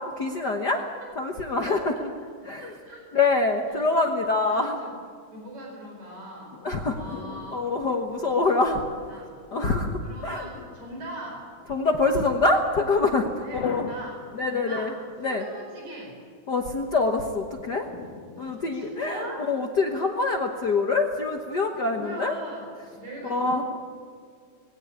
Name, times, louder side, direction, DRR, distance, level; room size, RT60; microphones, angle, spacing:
voice 1, 0.2-0.8 1.2-1.9 2.4-2.7 3.1-4.8 6.6-7.0 7.5-8.8 9.5-10.5 11.7-13.8 14.3-14.9 15.2-15.4 16.5-17.9 18.4-22.3 23.3-23.6, left 3 dB, 60° left, 3 dB, 1.1 m, -25 dB
voice 2, 0.7-1.1 1.7-1.9 2.6-3.1 3.7-4.1 4.5-4.9 5.3-6.6 6.9-7.7 8.2-9.4 10.0-11.5 13.4-14.2 14.5-15.0 15.2-16.2 18.4-19.5 21.9-22.7 23.0-23.6, right 1 dB, 60° right, 0 dB, 5.7 m, -40 dB
sound 1, 6.5-8.8 10.5-11.7 13.5-14.9 17.9-19.3, left 6 dB, 90° left, 3.1 m, -42 dB
20.0 x 17.0 x 9.8 m, 2.1 s
omnidirectional pair, 3.7 m